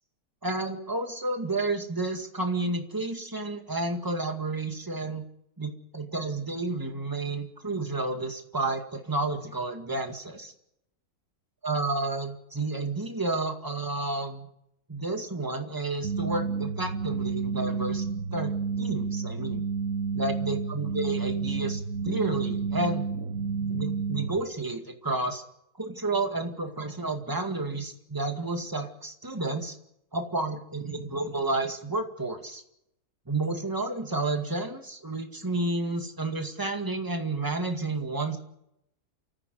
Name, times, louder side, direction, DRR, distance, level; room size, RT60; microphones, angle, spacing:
voice 1, 0.4-5.2 5.6-10.5 11.6-14.5 14.9-18.1 18.3-19.7 20.1-23.1 23.7-25.4 25.8-29.7 30.1-32.6 33.3-38.4, right 2 dB, 15° right, 5 dB, 2.0 m, -31 dB
sound 1, 16.0-24.4, right 5 dB, 60° right, 1.5 m, -30 dB
28.5 x 14.5 x 8.0 m, 0.80 s
omnidirectional pair, 1.7 m